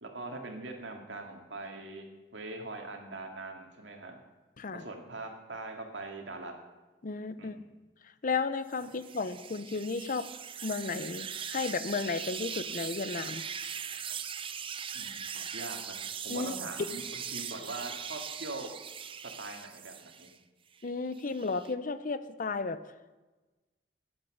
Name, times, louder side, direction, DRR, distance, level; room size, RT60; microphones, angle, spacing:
voice 1, 0.0-4.2 4.7-6.5 7.4-7.6 14.9-16.0 16.2-18.7 19.2-20.3, right 2 dB, 85° right, 3 dB, 2.1 m, -42 dB
voice 2, 7.0-7.6 8.2-10.3 10.6-13.4 16.3-16.5 20.8-22.8, left 4 dB, 50° left, 13 dB, 0.7 m, -33 dB
sound 1, 8.7-20.4 20.8-21.7, right 7 dB, 30° right, 0.6 m, -40 dB
13.0 x 8.9 x 6.4 m, 1.2 s
head